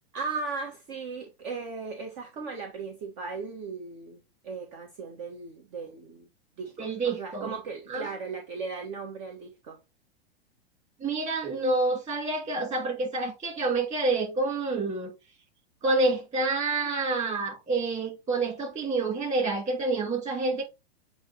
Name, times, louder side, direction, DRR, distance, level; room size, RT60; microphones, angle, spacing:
voice 1, 0.1-6.3 6.6-9.8, right 4 dB, 45° right, 1.4 m, -37 dB
voice 2, 6.8-7.5 7.9-8.1 11.0-15.1 15.8-20.6, right 3 dB, 20° right, 2.9 m, -28 dB
7.8 x 2.9 x 4.3 m
figure-of-eight pair, 105°, 32 cm